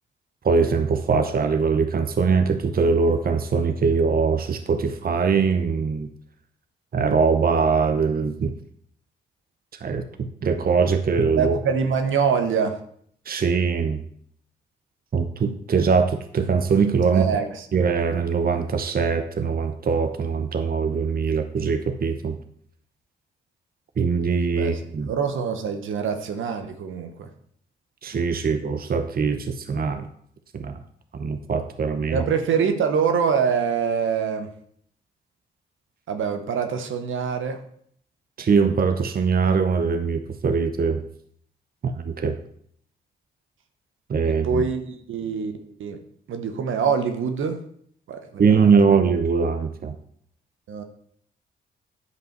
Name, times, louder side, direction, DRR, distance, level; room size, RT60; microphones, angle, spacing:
voice 1, 0.4-6.1 6.9-8.5 9.8-11.6 13.3-14.0 15.1-17.3 17.7-22.4 24.0-25.1 28.0-30.1 30.5-30.8 31.1-32.2 38.4-41.0 41.8-42.4 44.1-44.6 48.4-50.0, right 5 dB, 45° right, 8 dB, 0.8 m, -22 dB
voice 2, 11.4-12.8 17.1-17.7 24.5-24.8 25.1-27.3 32.1-34.5 36.1-37.6 44.3-46.0 46.3-47.6 48.1-48.4 50.7-50.8, right 6 dB, 70° right, 7 dB, 1.0 m, -24 dB
9.6 x 5.3 x 4.6 m, 0.64 s
hypercardioid pair, 40°, 21 cm